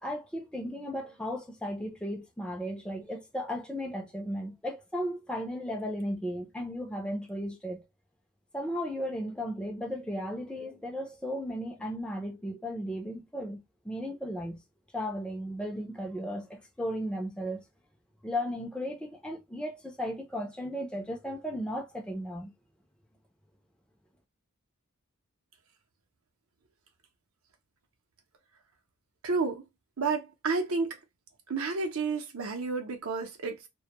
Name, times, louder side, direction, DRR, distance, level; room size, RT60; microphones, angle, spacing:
voice 1, 0.0-7.8 8.5-14.6 14.9-17.6 18.2-22.5, equal, 5° left, 0.5 m, -35 dB
voice 2, 29.2-29.6 30.0-31.0 31.5-33.7, right 4 dB, 70° right, 0.6 m, -31 dB
2.2 x 2.1 x 2.8 m
head